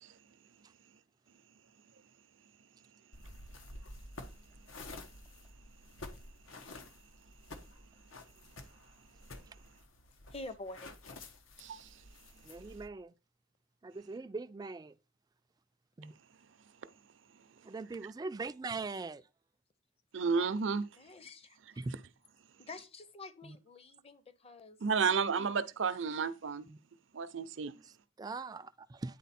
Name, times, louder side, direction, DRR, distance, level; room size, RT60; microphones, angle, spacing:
sound 1, 3.1-12.9, left 2 dB, 90° left, 1.1 m, -51 dB
voice 1, 10.3-10.9 21.0-21.6 22.6-24.8, left 2 dB, 30° left, 0.7 m, -47 dB
voice 2, 11.6-11.9 20.1-20.9 24.8-26.6 27.1-27.7, right 5 dB, 65° right, 0.6 m, -32 dB
voice 3, 12.4-13.1 13.8-14.9 16.0-16.1 17.6-19.2 21.8-21.9 23.4-23.6 26.6-26.8 27.8-29.2, right 3 dB, 20° right, 0.3 m, -41 dB
9.3 x 4.0 x 4.2 m
head